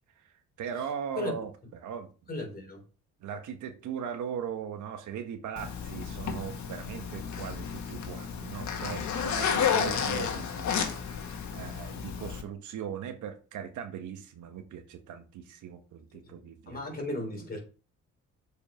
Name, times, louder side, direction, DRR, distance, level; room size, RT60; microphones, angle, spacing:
voice 1, 0.2-2.1 3.2-16.8, right 8 dB, 80° right, 1.5 m, -39 dB
voice 2, 2.3-2.8 16.7-17.6, left 1 dB, 30° left, 3.8 m, -35 dB
Zipper (clothing), 5.6-12.4, left 7 dB, 70° left, 1.7 m, -32 dB
7.4 x 5.2 x 5.1 m
cardioid pair, 90°, 30 cm